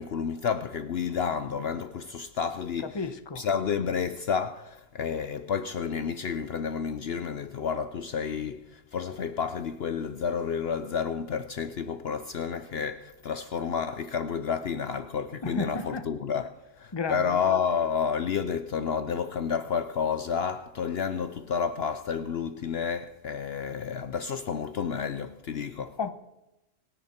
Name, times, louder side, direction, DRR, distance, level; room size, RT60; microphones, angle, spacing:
voice 1, 0.0-3.1 3.4-26.0, left 6 dB, 60° left, 0.9 m, -30 dB
voice 2, 2.9-3.4 15.4-16.0 16.9-17.4 26.0-26.1, left 4 dB, 25° left, 0.9 m, -32 dB
26.5 x 10.0 x 4.4 m
omnidirectional pair, 1.3 m